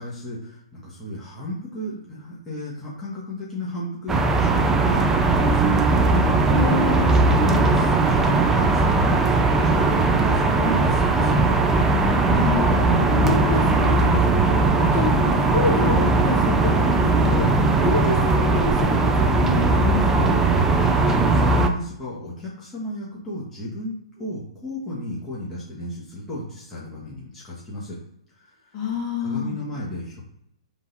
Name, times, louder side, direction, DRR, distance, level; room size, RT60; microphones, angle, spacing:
voice 1, 0.0-5.7 6.8-11.5 20.9-28.0 28.3-28.8 29.2-30.2, left 1 dB, 10° left, -7 dB, 1.2 m, -33 dB
sound 1, 4.1-21.7, right 3 dB, 15° right, 0.4 m, -19 dB
voice 2, 6.5-7.1 12.3-14.6 14.9-17.5 17.8-20.4 28.7-29.6, left 4 dB, 35° left, -3 dB, 1.5 m, -27 dB
3.8 x 2.8 x 3.9 m, 0.76 s
figure-of-eight pair, 120°, 3 cm